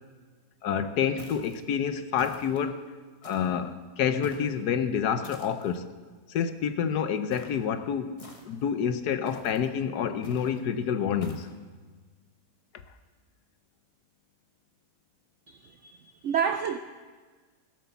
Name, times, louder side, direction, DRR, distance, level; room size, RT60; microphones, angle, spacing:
voice 1, 0.6-2.8 3.2-5.9 6.3-8.2 8.4-11.5, left 7 dB, 70° left, 10 dB, 1.2 m, -28 dB
sound 1, 1.2-1.6 2.2-2.7 3.2-3.6 4.2-4.6 5.2-5.8 7.3-7.6 8.2-8.7 9.3-9.7 10.2-10.6 11.2-11.6, left 2 dB, 20° left, 1.2 m, -47 dB
voice 2, 15.5-16.0 16.2-16.8, right 7 dB, 75° right, 8 dB, 0.6 m, -29 dB
16.5 x 8.2 x 6.9 m, 1.5 s
omnidirectional pair, 1.9 m